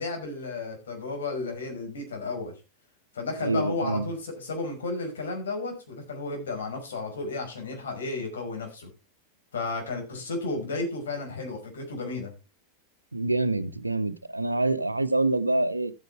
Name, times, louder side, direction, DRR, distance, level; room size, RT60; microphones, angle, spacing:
voice 1, 0.0-2.5 3.1-8.9 9.5-12.3, left 3 dB, 65° left, 5.2 m, -33 dB
voice 2, 3.4-4.1 13.1-15.9, right 2 dB, 85° right, 0.8 m, -26 dB
14.0 x 9.2 x 3.4 m
figure-of-eight pair, 90°, 0 cm